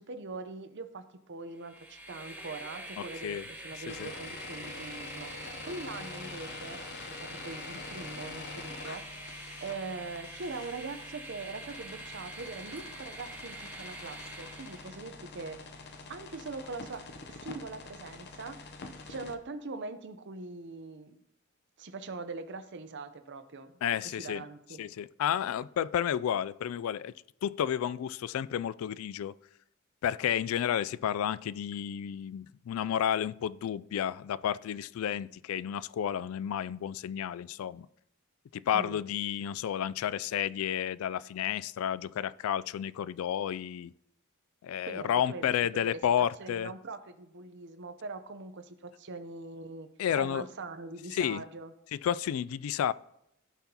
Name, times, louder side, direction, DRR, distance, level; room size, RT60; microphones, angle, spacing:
voice 1, 0.0-5.3 5.6-6.8 7.1-9.0 9.3-15.7 16.1-17.0 17.3-18.7 19.1-21.2 21.8-24.8 38.7-39.0 44.8-51.7, right 3 dB, 55° right, 0.7 m, -42 dB
Train, 1.5-15.0, right 2 dB, 10° right, 1.2 m, -45 dB
voice 2, 3.0-3.4 4.0-4.1 23.8-24.4 24.8-27.1 27.4-29.3 30.0-37.9 38.5-43.9 44.6-46.7 50.0-50.4 51.1-51.4 51.9-52.9, left 9 dB, 70° left, 0.3 m, -31 dB
sound 1, 3.9-19.4, left 3 dB, 50° left, 0.7 m, -46 dB
15.5 x 5.8 x 2.9 m
head